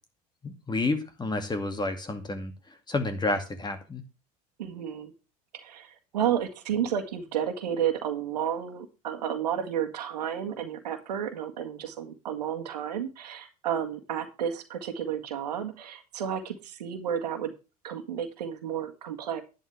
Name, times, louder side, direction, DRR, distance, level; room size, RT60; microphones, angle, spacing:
voice 1, 0.4-4.0, left 2 dB, 20° left, 7 dB, 2.3 m, -30 dB
voice 2, 4.6-5.1 5.5-17.5 17.8-19.4, right 9 dB, 85° right, 6 dB, 1.8 m, -31 dB
10.5 x 10.5 x 3.4 m, 0.30 s
hypercardioid pair, 75°, 20 cm